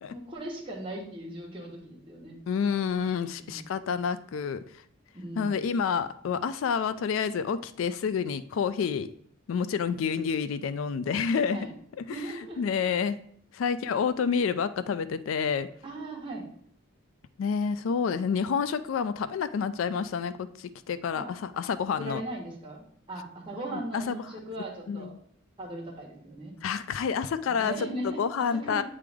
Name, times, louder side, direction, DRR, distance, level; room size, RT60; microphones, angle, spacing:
voice 1, 0.1-2.4 3.4-3.6 5.1-5.5 10.0-10.2 11.5-11.7 12.1-12.6 15.8-16.5 21.1-21.3 22.0-25.1 25.6-26.5 27.5-28.8, right 1 dB, 25° right, -2 dB, 1.4 m, -38 dB
voice 2, 2.5-4.6 5.4-9.1 9.5-11.6 12.0-12.1 12.6-13.2 13.5-15.7 17.4-22.2 23.9-24.2 24.9-25.1 26.6-27.7 28.2-28.8, left 6 dB, 75° left, 14 dB, 0.3 m, -28 dB
8.4 x 3.4 x 3.5 m, 0.66 s
head